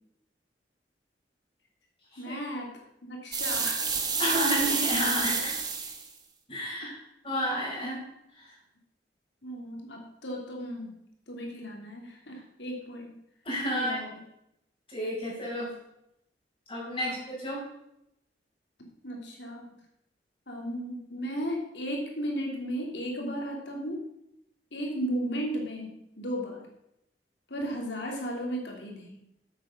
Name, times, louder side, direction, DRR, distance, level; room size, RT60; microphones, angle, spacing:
voice 1, 2.2-2.7 3.0-3.9 5.2-5.3 6.8-6.9 9.4-10.9 11.3-13.2 13.7-14.1 17.0-17.2 19.0-19.7 20.5-24.1 24.7-26.7 27.5-29.2, equal, 85° left, 0 dB, 3.0 m, -35 dB
sound 1, 3.3-6.1, right 5 dB, 25° right, 1.4 m, -29 dB
voice 2, 4.2-5.6 6.5-7.0 7.2-8.0 8.3-8.5 13.5-14.0 14.9-15.7 16.7-17.6, equal, 30° left, -5 dB, 5.3 m, -31 dB
9.0 x 8.0 x 6.7 m, 0.82 s
head